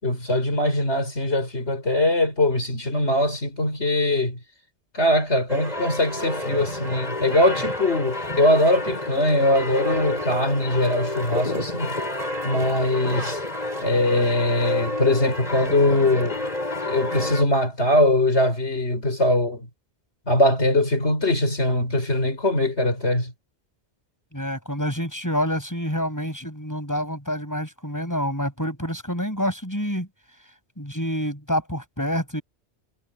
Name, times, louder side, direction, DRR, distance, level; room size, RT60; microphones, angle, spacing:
voice 1, 0.0-4.4 4.9-12.0 12.4-13.4 13.8-16.4 16.8-19.7 20.3-23.3, left 1 dB, 75° left, 5.5 m, -21 dB
sound 1, 5.5-17.4, left 1 dB, 35° left, 5.2 m, -29 dB
voice 2, 24.3-30.1 30.8-32.4, equal, 15° left, 6.8 m, -27 dB
omnidirectional pair, 1.2 m